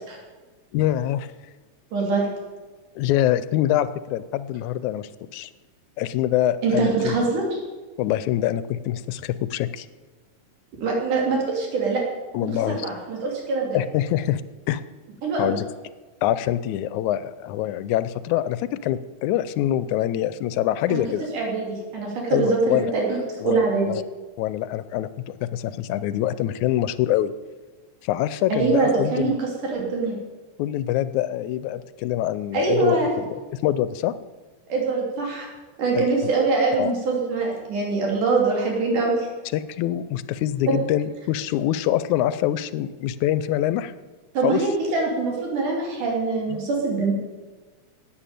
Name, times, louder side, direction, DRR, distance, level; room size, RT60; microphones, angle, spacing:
voice 1, 0.7-1.3 3.0-5.5 6.0-7.2 8.0-9.9 12.3-12.9 13.7-14.4 14.7-14.8 15.4-15.7 16.2-21.3 22.3-22.9 23.4-24.0 24.4-27.3 28.0-29.4 30.6-34.1 35.9-36.3 36.8-36.9 39.5-43.9 44.4-44.6 46.5-46.6, left 12 dB, 80° left, 15 dB, 2.0 m, -25 dB
voice 2, 1.9-2.3 6.6-7.4 10.8-12.0 12.4-13.8 15.2-15.5 20.9-21.0 21.3-23.2 23.4-23.9 28.5-30.2 32.5-33.2 34.7-35.5 35.8-39.3 44.3-47.1, right 4 dB, 85° right, -1 dB, 4.6 m, -23 dB
11.5 x 8.9 x 9.1 m, 1.3 s
omnidirectional pair, 3.5 m